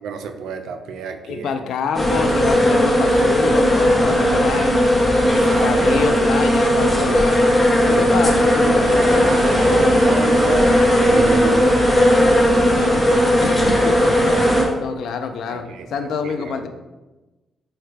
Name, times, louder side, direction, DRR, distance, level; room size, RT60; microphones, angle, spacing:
voice 1, 0.0-1.5 5.2-5.8 9.8-14.6 15.5-15.9 16.2-16.7, right 6 dB, 90° right, 7 dB, 0.4 m, -31 dB
voice 2, 1.3-4.8 5.6-7.5 7.9-8.9 13.4-14.0 14.8-16.7, left 5 dB, 75° left, 8 dB, 0.4 m, -26 dB
sound 1, 1.9-14.6, equal, 15° left, 0.9 m, -16 dB
sound 2, 8.8-9.9 10.4-11.4 12.0-12.4, right 2 dB, 65° right, 0.7 m, -31 dB
5.4 x 2.2 x 3.2 m, 1.1 s
cardioid pair, 135°, 0 cm